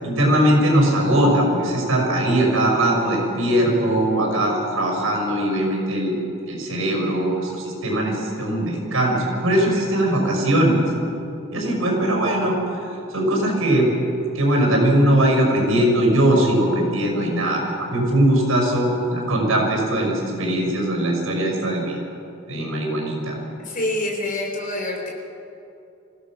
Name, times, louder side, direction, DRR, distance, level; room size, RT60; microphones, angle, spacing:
voice 1, 0.0-6.1 6.5-10.8 11.5-12.6 13.1-13.9 14.3-21.9 22.5-23.3, right 1 dB, 75° right, 0 dB, 6.0 m, -20 dB
voice 2, 23.6-25.1, left 1 dB, 40° left, 0 dB, 4.1 m, -26 dB
26.0 x 16.0 x 6.3 m, 2.8 s
head